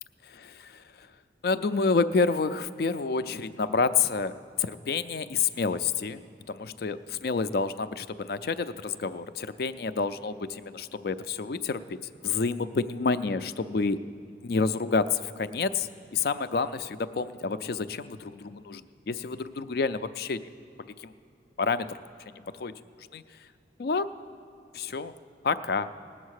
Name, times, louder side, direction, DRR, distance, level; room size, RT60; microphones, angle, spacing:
voice 1, 0.2-1.1 1.4-6.2 6.5-14.0 14.4-20.4 20.9-21.1 21.6-22.0 22.3-23.2 23.8-24.1 24.7-25.1 25.4-25.9, left 4 dB, 55° left, 12 dB, 0.4 m, -29 dB
18.0 x 7.9 x 6.4 m, 2.4 s
head